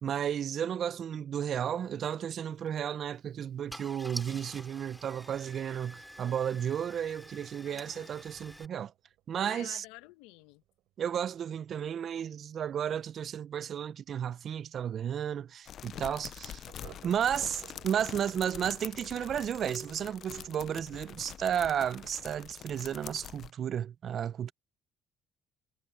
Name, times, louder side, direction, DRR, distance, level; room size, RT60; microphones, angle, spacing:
voice 1, 0.0-8.9 9.3-9.8 11.0-16.7 17.0-24.5, right 9 dB, 55° right, 0.6 m, -33 dB
Car / Engine starting, 2.6-2.8 3.4-3.5 3.7-8.7, equal, ahead, 3.8 m, -48 dB
sound 1, 4.9-14.2 14.5-14.6 14.9-15.0 15.4-15.5 16.6-23.4, right 15 dB, 75° right, 3.5 m, -60 dB
voice 2, 7.6-8.2 9.4-10.6, left 21 dB, 85° left, 1.1 m, -51 dB
Plastic Bag Crinkle, 15.7-23.5, left 10 dB, 55° left, 0.6 m, -45 dB
supercardioid pair, 70°, 0 cm